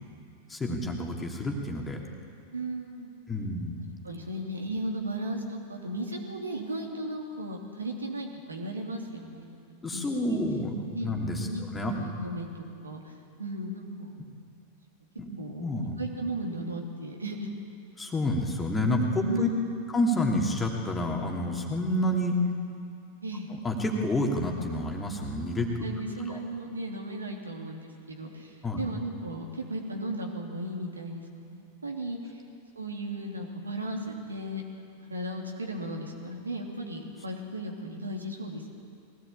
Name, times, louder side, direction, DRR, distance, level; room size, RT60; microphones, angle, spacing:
voice 1, 0.5-2.0 3.3-3.8 9.8-11.5 11.7-12.0 15.2-15.3 15.6-16.0 18.0-19.5 19.9-22.4 23.5-25.7 26.3-26.4 28.6-28.8, left 1 dB, 15° left, 0 dB, 2.9 m, -29 dB
voice 2, 2.4-3.1 4.0-10.4 10.9-13.1 13.4-14.1 15.4-15.6 16.0-17.5 19.2-19.8 23.2-23.5 25.8-32.3 32.7-34.6 35.1-38.7, right 1 dB, 75° right, 1 dB, 3.0 m, -35 dB
22.0 x 17.5 x 8.8 m, 2.4 s
figure-of-eight pair, 90°, 0 cm